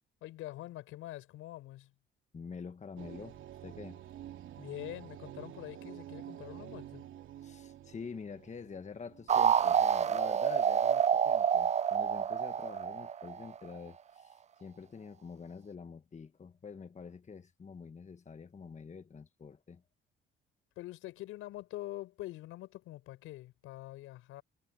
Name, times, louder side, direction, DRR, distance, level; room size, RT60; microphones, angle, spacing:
voice 1, 0.2-1.9 4.6-7.1 20.8-24.4, left 16 dB, 80° left, 4.9 m, -45 dB
voice 2, 2.3-4.0 7.4-19.8, left 5 dB, 35° left, 1.3 m, -47 dB
sound 1, 3.0-10.4, right 11 dB, 70° right, 2.8 m, -49 dB
sound 2, 9.3-13.8, right 8 dB, 35° right, 0.4 m, -28 dB
supercardioid pair, 65°, 21 cm